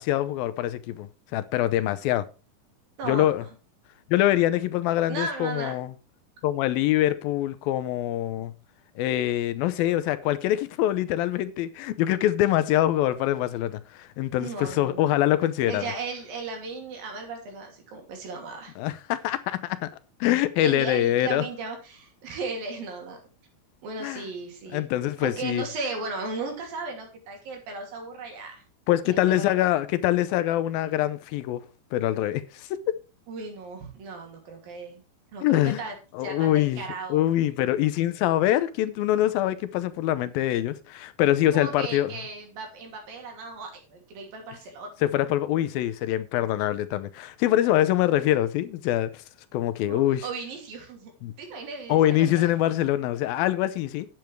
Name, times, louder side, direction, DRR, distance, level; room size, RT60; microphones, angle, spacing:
voice 1, 0.0-2.3 3.0-3.4 4.1-5.9 6.4-8.5 9.0-15.9 18.8-19.9 20.2-21.5 24.0-24.2 24.7-25.6 28.9-31.6 31.9-33.0 35.4-35.8 36.1-36.8 37.1-42.1 45.0-49.1 49.5-50.3 51.2-51.3 51.9-54.1, left 13 dB, 80° left, 2.5 m, -24 dB
voice 2, 5.1-5.8 14.4-15.0 15.7-18.7 20.6-23.2 23.8-24.8 25.2-28.6 29.1-29.5 33.3-35.0 35.3-35.9 36.2-37.2 41.5-44.9 49.9-51.1 51.4-52.6, right 4 dB, 70° right, 4.4 m, -36 dB
9.2 x 8.7 x 4.6 m
omnidirectional pair, 4.2 m